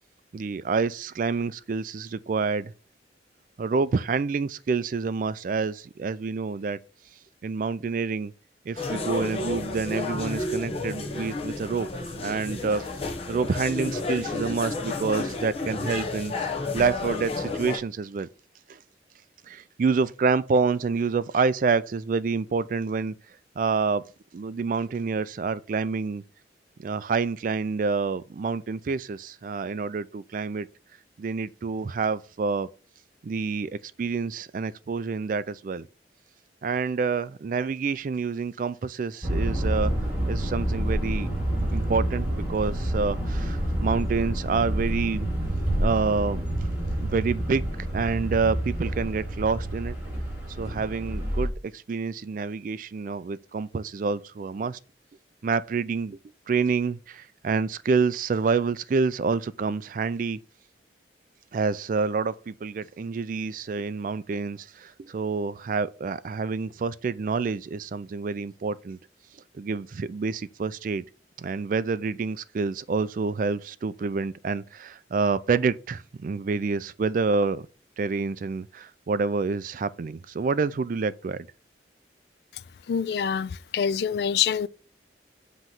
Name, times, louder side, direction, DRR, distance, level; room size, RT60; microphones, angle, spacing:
voice 1, 0.3-2.7 3.6-6.8 7.4-8.3 8.7-12.9 13.3-18.3 18.7-18.8 19.5-23.1 23.6-24.0 24.3-26.2 26.8-30.7 31.2-32.7 33.2-35.9 36.6-39.9 40.3-41.3 41.7-45.3 45.8-46.4 47.0-47.7 47.9-50.0 50.6-54.8 55.4-56.2 56.5-60.4 61.5-69.0 69.6-71.0 71.4-77.7 78.0-81.5, right 4 dB, 45° right, 0.3 m, -28 dB
sound 1, 8.8-17.8, left 3 dB, 35° left, 0.9 m, -31 dB
sound 2, 39.2-51.5, right 1 dB, 10° right, 2.7 m, -28 dB
voice 2, 82.9-84.7, left 7 dB, 60° left, 0.3 m, -26 dB
7.6 x 3.1 x 5.8 m
head